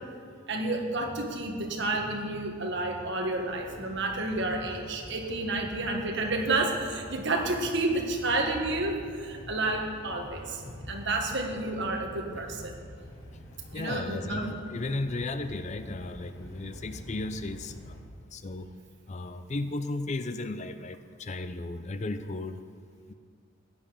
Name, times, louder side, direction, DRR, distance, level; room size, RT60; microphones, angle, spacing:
voice 1, 0.5-10.6 10.9-12.7 13.7-14.5, right 2 dB, 55° right, 2 dB, 1.6 m, -30 dB
sound 1, 3.4-18.0, equal, 65° left, 2.9 m, -46 dB
voice 2, 13.7-18.0 18.3-18.7 19.1-22.6, left 2 dB, 35° left, 10 dB, 0.5 m, -35 dB
15.5 x 9.8 x 5.1 m, 2.1 s
head